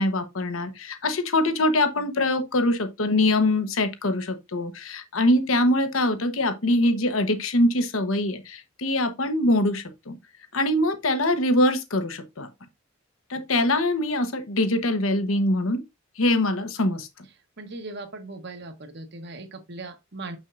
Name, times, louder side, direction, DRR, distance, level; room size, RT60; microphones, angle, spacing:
voice 1, 0.0-10.2 10.5-12.5 13.3-15.8 16.2-17.1, left 1 dB, 85° left, 1.1 m, -23 dB
voice 2, 17.6-20.4, right 2 dB, 55° right, 1.1 m, -38 dB
6.7 x 6.2 x 2.5 m
head